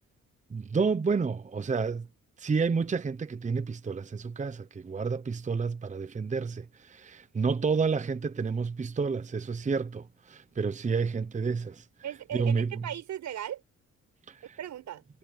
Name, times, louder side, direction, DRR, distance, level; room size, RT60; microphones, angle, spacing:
voice 1, 0.5-2.1 2.4-11.9 12.3-12.8 14.3-14.6, right 5 dB, 25° right, 0.8 m, -30 dB
voice 2, 12.0-13.6 14.6-15.0, right 10 dB, 70° right, 5.2 m, -37 dB
cardioid pair, 90°, 30 cm